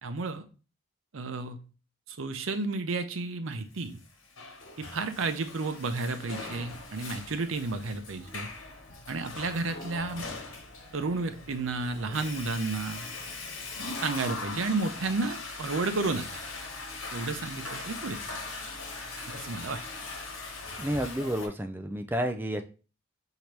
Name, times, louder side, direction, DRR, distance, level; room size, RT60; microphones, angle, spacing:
voice 1, 0.0-0.4 1.1-1.6 2.1-4.0 4.8-8.5 9.1-10.3 10.9-13.1 14.0-16.4 17.1-18.4 19.2-19.8, right 3 dB, 80° right, 9 dB, 0.6 m, -32 dB
Water / Toilet flush, 4.0-21.5, left 3 dB, 90° left, 1.2 m, -40 dB
voice 2, 20.8-22.6, equal, 10° right, 7 dB, 0.3 m, -30 dB
5.9 x 2.8 x 3.2 m, 0.35 s
head